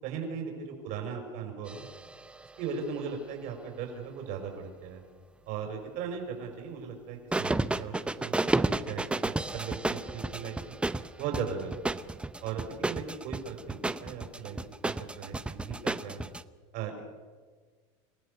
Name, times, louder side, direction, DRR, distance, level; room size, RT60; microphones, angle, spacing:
voice 1, 0.0-1.9 2.6-5.0 5.5-10.8 11.2-11.9 12.4-14.6 14.8-16.2 16.7-17.0, right 6 dB, 55° right, 3 dB, 5.8 m, -38 dB
sound 1, 1.7-3.1 7.3-16.4, right 2 dB, 5° right, 0.7 m, -32 dB
27.5 x 16.0 x 6.9 m, 1.5 s
supercardioid pair, 125°, 15 cm